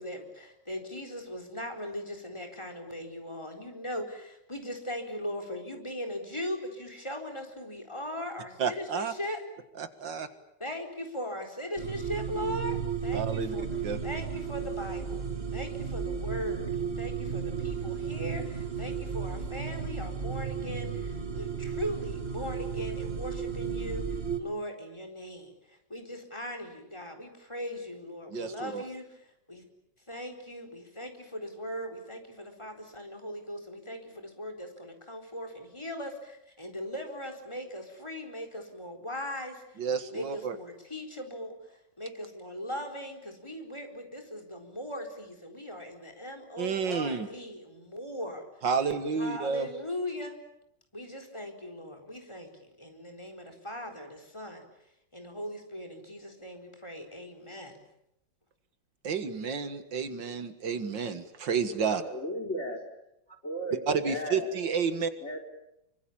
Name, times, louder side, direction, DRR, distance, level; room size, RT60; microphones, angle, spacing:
voice 1, 0.0-9.4 10.6-13.7 14.0-15.3 15.5-29.6 30.1-39.8 40.1-48.5 49.2-50.4 50.9-54.6 55.1-57.8, equal, 15° left, 5 dB, 4.3 m, -39 dB
voice 2, 8.6-9.1 9.8-10.3 13.1-13.6 13.8-14.0 28.3-28.8 39.8-40.6 46.6-47.3 48.6-49.7 59.0-62.0 63.9-65.1, right 5 dB, 80° right, 10 dB, 2.4 m, -30 dB
sound 1, 11.8-24.4, right 6 dB, 35° right, 2.1 m, -34 dB
voice 3, 61.9-62.8 63.4-64.5 65.2-65.4, equal, 40° left, 3 dB, 4.6 m, -35 dB
26.0 x 24.5 x 8.7 m, 0.82 s
omnidirectional pair, 1.9 m